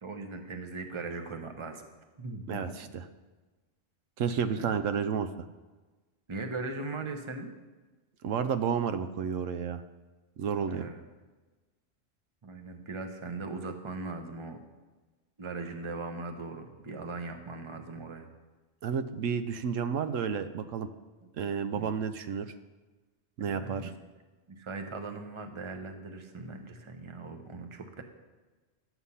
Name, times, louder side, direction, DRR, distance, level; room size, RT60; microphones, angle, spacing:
voice 1, 0.0-1.8 2.2-2.7 4.5-4.7 6.3-7.5 10.6-11.0 12.4-14.6 15.4-18.3 21.2-21.3 21.7-21.9 23.4-23.9 24.5-28.0, right 3 dB, 25° right, 5 dB, 0.9 m, -39 dB
voice 2, 2.5-3.1 4.2-5.3 8.2-9.8 10.4-10.9 18.8-20.9 21.4-22.5 23.4-23.9, right 7 dB, 85° right, 10 dB, 1.0 m, -31 dB
11.5 x 8.1 x 5.5 m, 1.2 s
omnidirectional pair, 1.3 m